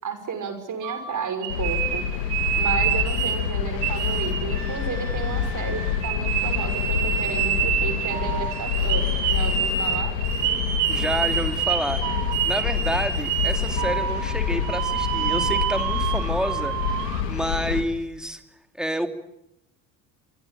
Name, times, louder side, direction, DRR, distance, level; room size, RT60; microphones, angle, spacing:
voice 1, 0.0-2.0 2.5-10.1, right 6 dB, 35° right, 8 dB, 6.3 m, -32 dB
sound 1, 0.8-3.5 3.8-17.2, right 9 dB, 65° right, 4.1 m, -27 dB
sound 2, 1.5-17.8, left 8 dB, 70° left, 2.6 m, -27 dB
voice 2, 10.9-12.1 12.4-16.8 17.3-18.4 18.8-19.1, equal, ahead, 8 dB, 2.7 m, -29 dB
26.5 x 25.0 x 8.8 m, 0.85 s
figure-of-eight pair, 60°, 50 cm